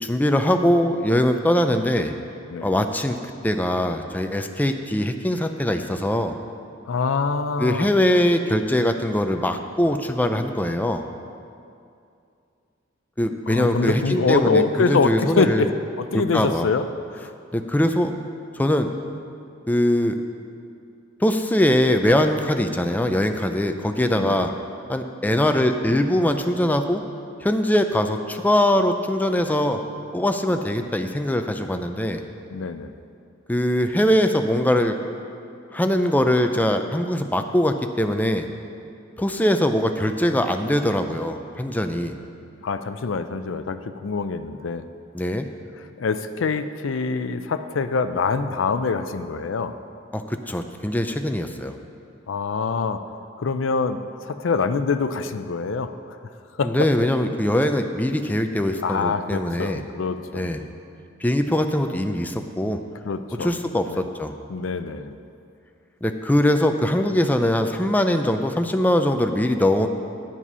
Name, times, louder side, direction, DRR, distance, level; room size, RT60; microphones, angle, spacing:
voice 1, 0.0-2.1 2.6-3.2 3.4-6.3 7.6-11.1 13.2-15.6 16.1-16.7 17.5-18.1 18.6-18.9 19.7-20.2 21.2-24.5 24.9-27.0 27.4-29.8 30.1-32.2 33.5-35.0 35.7-38.5 39.2-42.1 45.1-45.5 50.1-51.8 56.6-59.8 60.3-60.6 61.2-62.8 63.4-64.3 66.0-69.9, left 1 dB, 10° left, 6 dB, 0.4 m, -22 dB
voice 2, 6.9-7.9 13.5-15.7 16.0-16.9 17.1-17.3 24.2-24.5 32.5-32.9 42.6-44.9 46.0-49.7 52.3-53.0 53.4-56.2 56.6-56.9 58.8-60.6 63.0-63.5 63.9-64.0 64.5-65.2, left 4 dB, 75° left, 10 dB, 0.5 m, -25 dB
9.9 x 7.5 x 5.5 m, 2.5 s
head